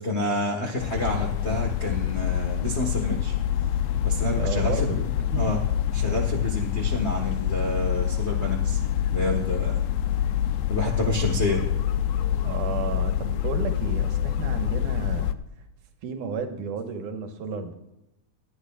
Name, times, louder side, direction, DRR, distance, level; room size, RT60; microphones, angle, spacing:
voice 1, 0.0-3.3 4.0-5.0 5.4-5.6 5.9-8.8 9.1-9.8 10.7-11.7, left 1 dB, 70° left, -1 dB, 0.6 m, -28 dB
sound 1, 0.8-15.3, left 10 dB, 90° left, 1.4 m, -26 dB
voice 2, 4.4-5.0 5.3-5.5 12.4-15.3 16.0-17.7, right 5 dB, 85° right, 5 dB, 2.7 m, -32 dB
19.0 x 11.0 x 2.4 m, 0.90 s
omnidirectional pair, 3.6 m